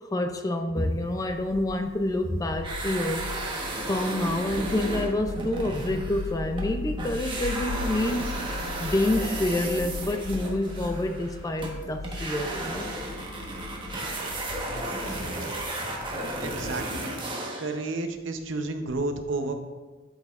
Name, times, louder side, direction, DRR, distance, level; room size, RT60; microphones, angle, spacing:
voice 1, 0.1-3.3 3.8-8.5 8.8-12.9, left 1 dB, 20° left, 6 dB, 0.4 m, -28 dB
sound 1, 0.8-16.9, left 4 dB, 90° left, 0.4 m, -39 dB
sound 2, 2.6-6.7 7.0-17.8, right 2 dB, 25° right, 1.1 m, -34 dB
voice 2, 16.4-17.1 17.6-19.6, right 2 dB, 70° right, 6 dB, 0.7 m, -31 dB
11.5 x 5.5 x 2.4 m, 1.3 s
head